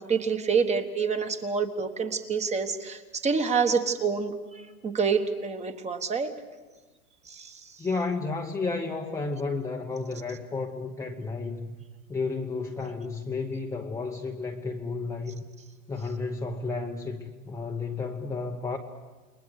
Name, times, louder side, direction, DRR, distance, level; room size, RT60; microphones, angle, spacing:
voice 1, 0.0-6.3 7.3-7.6, right 5 dB, 15° right, 8 dB, 1.4 m, -27 dB
voice 2, 7.8-11.8 12.1-15.4 15.9-18.8, left 3 dB, 5° left, 0 dB, 0.9 m, -32 dB
29.0 x 21.5 x 6.6 m, 1.2 s
hypercardioid pair, 140°, 46 cm